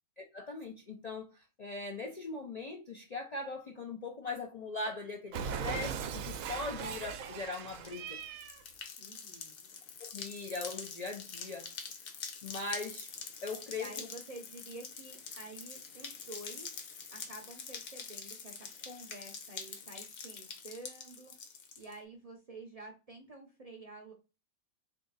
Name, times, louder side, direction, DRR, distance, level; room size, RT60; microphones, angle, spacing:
voice 1, 0.2-8.2 10.0-11.7 12.4-13.1 13.4-14.1, left 3 dB, 45° left, 0.5 m, -40 dB
Cat, 5.3-8.6, right 7 dB, 85° right, 1.0 m, -39 dB
sound 1, 7.7-21.9, left 6 dB, 80° left, 1.2 m, -45 dB
voice 2, 9.0-9.7 13.7-16.7 17.1-21.3 21.8-24.1, right 2 dB, 40° right, 0.6 m, -49 dB
3.6 x 2.7 x 3.9 m
omnidirectional pair, 1.4 m